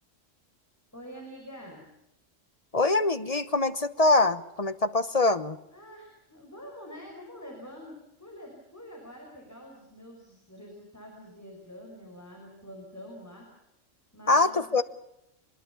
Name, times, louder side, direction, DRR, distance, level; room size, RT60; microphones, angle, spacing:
voice 1, 0.9-1.9 5.7-13.5 14.1-14.7, equal, 10° left, 0 dB, 5.8 m, -46 dB
voice 2, 2.7-5.6 14.3-14.8, left 2 dB, 30° left, 12 dB, 1.1 m, -24 dB
24.5 x 21.5 x 7.2 m, 0.84 s
omnidirectional pair, 1.3 m